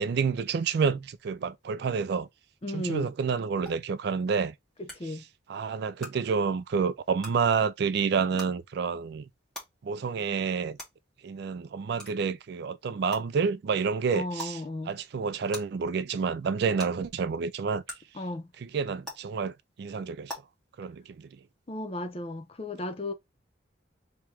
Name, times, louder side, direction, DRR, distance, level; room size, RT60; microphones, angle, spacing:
voice 1, 0.0-2.3 2.7-4.5 5.0-5.1 5.5-9.3 9.8-10.8 11.2-17.8 18.6-20.4 20.8-21.4, right 5 dB, 55° right, 0.3 m, -29 dB
voice 2, 2.6-3.1 5.0-5.2 14.1-14.9 18.2-18.5 21.7-23.1, left 2 dB, 30° left, 0.5 m, -34 dB
sound 1, 3.7-3.8 4.9-5.0 6.0-6.1 7.2-7.3 8.4-8.5 9.5-9.6 10.8-10.9 12.0-12.1 13.1-13.2 14.4-14.5 15.5-15.6 16.8-16.9 17.9-18.0 19.0-19.1 20.3-20.4, equal, 5° left, 1.5 m, -38 dB
3.1 x 3.0 x 3.3 m
head